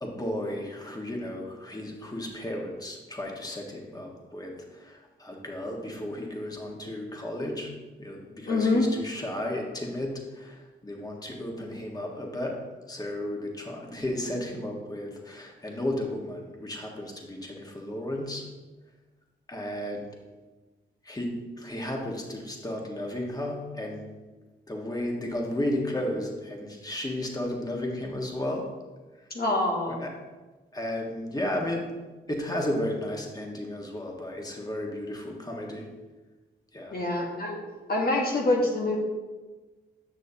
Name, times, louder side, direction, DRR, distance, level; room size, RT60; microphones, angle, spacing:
voice 1, 0.0-7.7 8.0-12.5 12.9-18.4 19.5-20.1 21.0-24.1 24.7-28.6 29.9-30.1 30.7-31.9 32.3-35.9 36.7-36.9, left 1 dB, 20° left, 0 dB, 1.7 m, -33 dB
voice 2, 8.5-8.9 29.3-30.0 36.9-37.6 37.9-39.0, left 2 dB, 50° left, -1 dB, 1.4 m, -25 dB
9.0 x 6.4 x 2.9 m, 1.2 s
cardioid pair, 55°, 20 cm